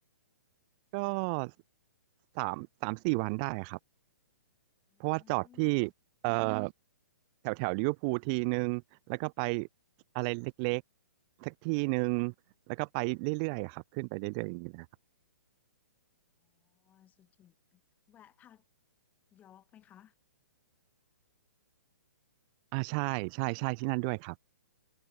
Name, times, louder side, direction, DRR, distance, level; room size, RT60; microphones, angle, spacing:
voice 1, 0.9-1.5 2.4-3.8 5.0-5.9 6.2-6.7 7.4-8.8 9.1-9.7 10.1-10.8 11.4-12.3 12.7-14.9 22.7-24.3, right 34 dB, 25° right, 0.6 m, -32 dB
voice 2, 4.9-5.9 16.4-17.8 18.1-18.6 19.3-20.1, left 11 dB, 15° left, 7.4 m, -60 dB
hypercardioid pair, 155°, 10 cm